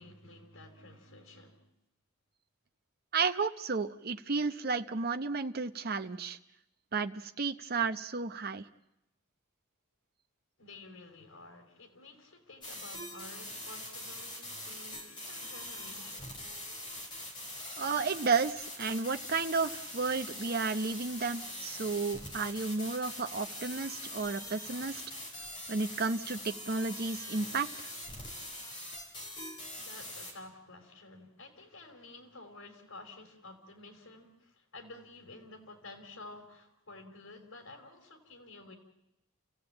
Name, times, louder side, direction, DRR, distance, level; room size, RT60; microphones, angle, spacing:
voice 1, 0.0-1.6 10.6-16.6 29.8-38.7, left 2 dB, 85° left, 4 dB, 4.3 m, -51 dB
voice 2, 3.1-6.4 6.9-8.7 17.8-25.0 25.7-27.9, right 4 dB, 50° right, 8 dB, 0.8 m, -32 dB
sound 1, 12.6-30.3, left 1 dB, 25° left, 4.2 m, -43 dB
29.5 x 16.0 x 8.8 m, 0.87 s
head